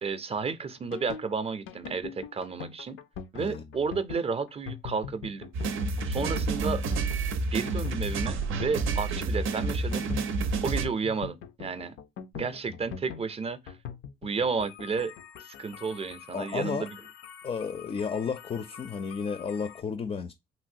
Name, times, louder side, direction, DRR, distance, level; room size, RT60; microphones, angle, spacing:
voice 1, 0.0-3.0 3.3-5.5 6.0-6.8 7.5-10.1 10.6-11.9 12.3-13.8 14.2-15.1 15.4-17.0, right 5 dB, 30° right, 0.5 m, -32 dB
sound 1, 0.8-19.8, left 7 dB, 85° left, 0.5 m, -43 dB
sound 2, 5.5-10.9, right 3 dB, 85° right, 0.5 m, -29 dB
voice 2, 16.3-16.9 17.4-20.3, left 6 dB, 30° left, 0.4 m, -32 dB
3.1 x 2.6 x 2.6 m
cardioid pair, 90°, 20 cm